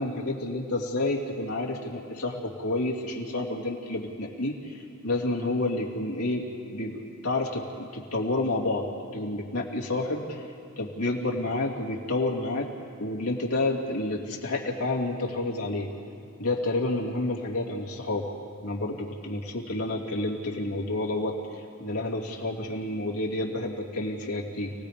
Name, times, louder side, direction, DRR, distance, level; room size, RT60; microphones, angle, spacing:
voice 1, 0.0-8.9 9.1-10.4 10.8-12.7 13.0-15.9 16.4-18.3 18.6-24.7, left 2 dB, 90° left, -2 dB, 2.8 m, -29 dB
29.5 x 18.5 x 5.2 m, 2.6 s
head